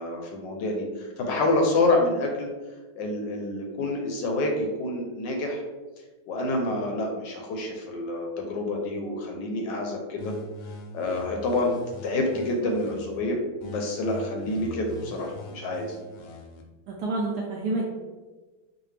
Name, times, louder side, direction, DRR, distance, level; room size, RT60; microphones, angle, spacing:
voice 1, 0.0-2.5 3.0-5.6 6.3-10.3 10.9-11.7 12.0-15.9, left 2 dB, 70° left, 1 dB, 1.1 m, -27 dB
sound 1, 10.2-13.2 13.6-16.6, left 2 dB, 90° left, 1.5 m, -42 dB
voice 2, 16.9-17.9, right 2 dB, 75° right, -2 dB, 0.9 m, -28 dB
4.8 x 2.3 x 3.2 m, 1.3 s
omnidirectional pair, 2.2 m